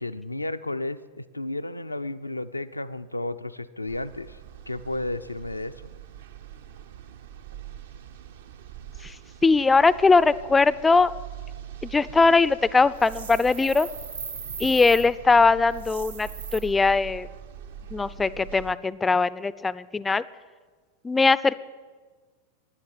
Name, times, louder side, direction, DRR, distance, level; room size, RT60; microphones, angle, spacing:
voice 1, 0.0-4.4 4.7-5.9, left 2 dB, 85° left, 12 dB, 0.4 m, -32 dB
sound 1, 3.9-18.7, right 10 dB, 60° right, 0.7 m, -43 dB
voice 2, 9.4-11.1 11.8-13.9 14.6-17.3 17.9-20.2 21.0-21.6, left 4 dB, 10° left, 18 dB, 0.4 m, -20 dB
sound 2, 13.0-15.0 15.7-16.6, right 5 dB, 75° right, 1.5 m, -38 dB
10.0 x 8.4 x 9.4 m, 1.4 s
figure-of-eight pair, 90°, 0 cm